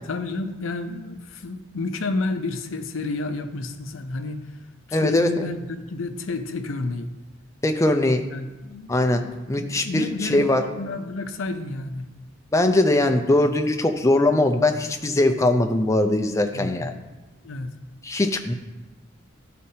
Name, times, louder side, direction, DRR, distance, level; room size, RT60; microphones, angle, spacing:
voice 1, 0.0-4.5 4.9-7.1 8.3-12.1 16.5-16.9 17.4-17.7, left 3 dB, 70° left, 7 dB, 0.6 m, -31 dB
voice 2, 4.9-5.3 7.6-8.3 8.9-10.6 12.5-16.9 18.0-18.5, left 1 dB, 15° left, 6 dB, 0.4 m, -21 dB
12.0 x 4.2 x 2.8 m, 1.1 s
head